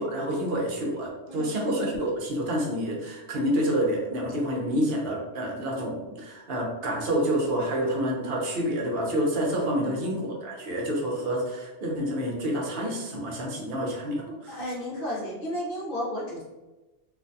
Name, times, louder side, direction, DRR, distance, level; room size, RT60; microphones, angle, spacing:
voice 1, 0.0-14.6, equal, 60° right, -1 dB, 0.8 m, -28 dB
voice 2, 14.5-16.4, left 1 dB, 55° left, -5 dB, 0.9 m, -33 dB
2.5 x 2.2 x 2.5 m, 1.1 s
omnidirectional pair, 1.2 m